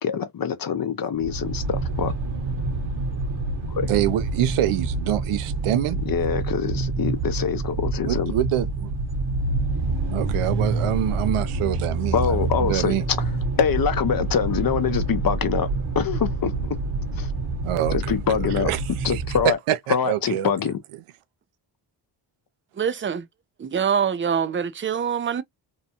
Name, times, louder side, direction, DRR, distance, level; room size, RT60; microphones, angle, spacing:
voice 1, 0.0-2.1 3.7-3.9 6.1-8.3 12.1-13.2 13.6-15.7 15.9-16.8 17.1-17.3 17.9-18.7 19.0-19.6 19.9-20.8, left 7 dB, 45° left, 0.7 m, -24 dB
sound 1, 1.2-19.5, right 3 dB, 55° right, 1.0 m, -27 dB
voice 2, 3.9-6.0 8.0-9.0 10.1-13.0 17.6-18.1 18.4-20.5, right 12 dB, 80° right, 0.6 m, -26 dB
voice 3, 22.7-23.3 23.6-25.4, right 7 dB, 25° right, 0.4 m, -24 dB
2.7 x 2.2 x 2.7 m
cardioid pair, 60°, 50 cm